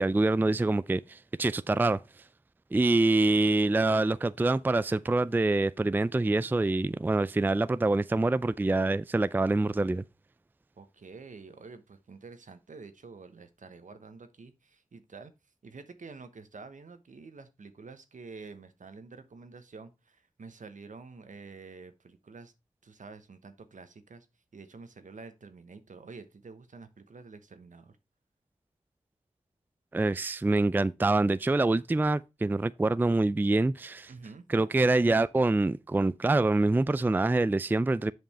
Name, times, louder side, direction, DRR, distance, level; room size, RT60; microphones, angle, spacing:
voice 1, 0.0-2.0 2.7-10.0 29.9-34.1 34.5-38.1, right 2 dB, 15° right, 0.3 m, -25 dB
voice 2, 10.8-15.3 15.6-22.5 22.8-24.3 24.5-28.0 34.1-34.5, right 4 dB, 75° right, 1.1 m, -48 dB
7.7 x 5.3 x 4.2 m
cardioid pair, 45°, 13 cm